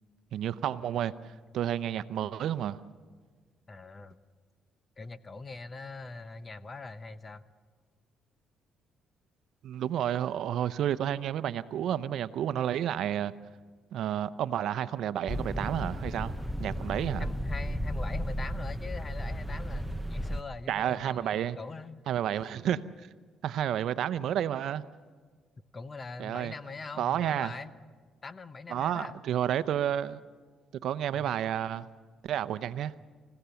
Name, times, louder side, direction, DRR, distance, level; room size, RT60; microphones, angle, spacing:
voice 1, 0.3-1.1 1.5-2.8 9.6-13.3 13.9-16.3 16.6-17.2 20.7-21.6 22.1-22.8 23.4-24.8 26.2-26.5 27.0-27.5 28.7-30.2 30.8-31.9 32.3-32.9, right 10 dB, 70° right, 14 dB, 0.7 m, -30 dB
voice 2, 3.7-4.2 5.0-7.4 17.2-22.1 22.3-22.5 25.7-27.7 28.2-29.2 31.1-31.4, left 3 dB, 30° left, 13 dB, 0.9 m, -42 dB
sound 1, 15.3-20.4, equal, ahead, 0.8 m, -34 dB
28.0 x 16.0 x 7.0 m, 1.5 s
cardioid pair, 90°, 0 cm